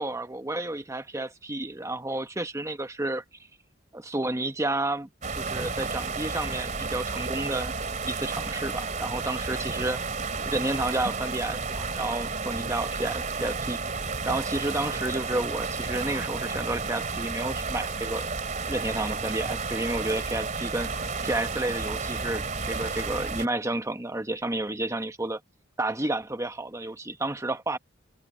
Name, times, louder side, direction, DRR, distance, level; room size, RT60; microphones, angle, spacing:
voice 1, 0.0-3.2 3.9-7.8 8.1-10.1 10.4-13.8 14.3-18.3 18.7-25.4 25.8-27.8, right 2 dB, 15° right, 1.2 m, -31 dB
sound 1, 5.2-23.5, right 4 dB, 40° right, 2.9 m, -32 dB
head